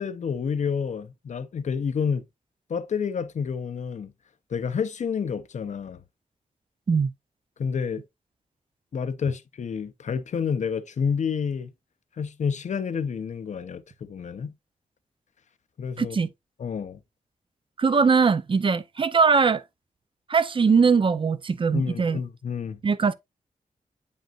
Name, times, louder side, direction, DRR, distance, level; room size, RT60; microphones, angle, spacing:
voice 1, 0.0-2.2 2.7-4.1 4.5-6.0 7.6-8.0 8.9-11.7 12.2-14.5 15.8-16.2 16.6-17.0 21.7-22.8, left 6 dB, 60° left, 0.7 m, -29 dB
voice 2, 16.0-16.3 17.8-19.6 20.3-22.2 22.8-23.1, right 5 dB, 40° right, 0.6 m, -21 dB
8.8 x 5.4 x 2.4 m
wide cardioid pair, 105°, 14 cm